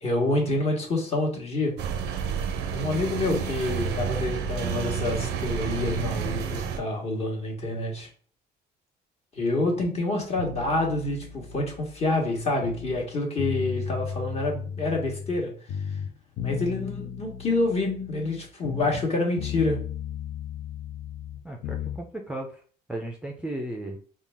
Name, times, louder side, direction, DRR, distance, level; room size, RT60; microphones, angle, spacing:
voice 1, 0.0-1.8 2.7-8.1 9.3-15.5 16.4-19.8, left 2 dB, 40° left, 0 dB, 1.3 m, -27 dB
sound 1, 1.8-6.8, right 7 dB, 85° right, 0.5 m, -30 dB
sound 2, 10.4-13.1 13.4-15.4 15.7-19.1 19.4-22.0, left 8 dB, 65° left, 0.5 m, -35 dB
voice 2, 21.4-22.6 22.9-24.0, right 1 dB, 5° right, 1 dB, 0.5 m, -35 dB
3.8 x 2.3 x 3.4 m, 0.43 s
cardioid pair, 110°, 17 cm